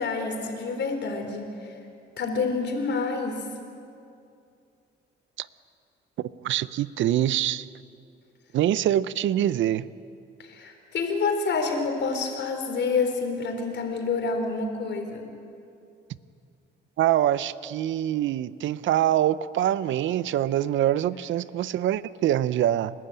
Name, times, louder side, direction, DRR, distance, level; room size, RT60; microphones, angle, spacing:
voice 1, 0.0-1.7 2.2-3.4 10.4-15.3, left 4 dB, 65° left, 4 dB, 4.0 m, -28 dB
voice 2, 6.4-7.7 8.5-9.9 17.0-22.9, right 12 dB, 75° right, 17 dB, 0.6 m, -24 dB
29.5 x 12.5 x 9.0 m, 2.5 s
cardioid pair, 90°, 20 cm